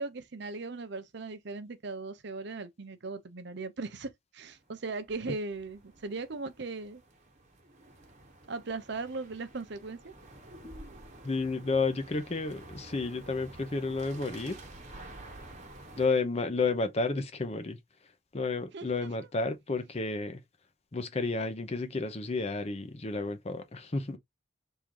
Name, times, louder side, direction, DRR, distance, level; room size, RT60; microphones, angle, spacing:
voice 1, 0.0-7.0 8.5-10.1 18.7-19.3, right 3 dB, 55° right, 0.7 m, -38 dB
sound 1, 4.5-16.1, right 1 dB, 35° right, 1.2 m, -50 dB
voice 2, 11.2-14.6 16.0-17.8 18.3-20.4 20.9-24.2, left 3 dB, 30° left, 0.6 m, -31 dB
3.7 x 2.6 x 4.6 m
head